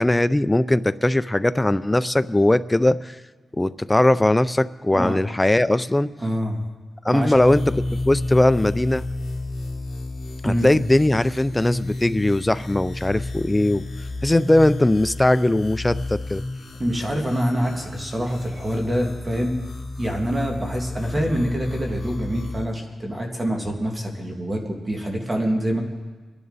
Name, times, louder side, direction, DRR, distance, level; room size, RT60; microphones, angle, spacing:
voice 1, 0.0-3.2 3.6-6.1 7.0-9.0 10.4-13.8 14.2-16.4, left 1 dB, 15° left, 14 dB, 0.4 m, -19 dB
voice 2, 6.2-6.6 7.1-7.4 10.4-10.7 16.8-19.6 20.0-25.8, equal, 25° right, 1 dB, 2.3 m, -25 dB
sound 1, 7.3-22.6, left 2 dB, 55° left, 2.6 m, -32 dB
25.5 x 11.0 x 4.1 m, 1.3 s
wide cardioid pair, 105°, 0 cm